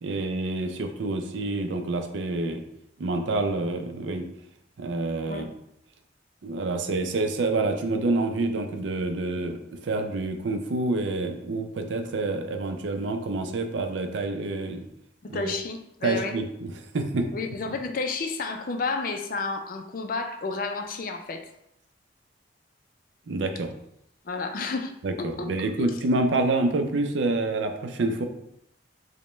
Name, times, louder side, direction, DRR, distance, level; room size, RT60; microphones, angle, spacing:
voice 1, 0.0-2.6 3.0-4.3 4.8-5.5 6.4-14.9 15.3-15.5 16.0-17.3 23.3-23.7 25.0-28.3, right 2 dB, 80° right, 5 dB, 0.5 m, -27 dB
voice 2, 15.2-16.4 17.3-21.5 24.2-24.9 25.2-25.5 25.8-25.9, left 4 dB, 50° left, 6 dB, 0.4 m, -31 dB
5.1 x 2.1 x 3.1 m, 0.78 s
head